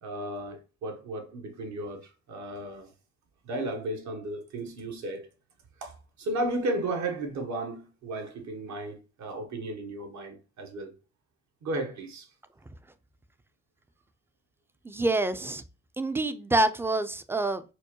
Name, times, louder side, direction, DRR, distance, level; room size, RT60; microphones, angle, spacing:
voice 1, 0.0-2.9 3.4-5.3 5.8-10.9 11.6-12.3, right 1 dB, 65° right, 1.0 m, -34 dB
voice 2, 14.8-15.6 16.0-17.6, right 2 dB, 10° right, 0.3 m, -26 dB
4.5 x 2.2 x 2.9 m
cardioid pair, 90°, 30 cm